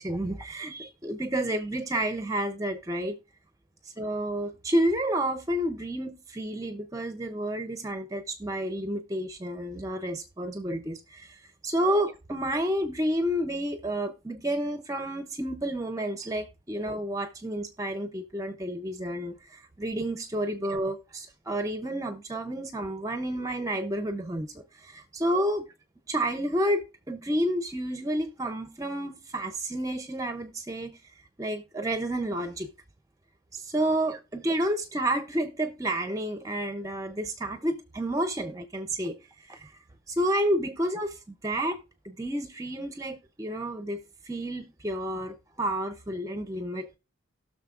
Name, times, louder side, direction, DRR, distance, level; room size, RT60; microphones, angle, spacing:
voice 1, 0.0-3.2 3.8-25.6 26.1-32.7 33.5-39.8 40.1-41.8 42.0-47.0, right 1 dB, 15° right, 0.5 m, -30 dB
18.0 x 6.3 x 2.4 m
head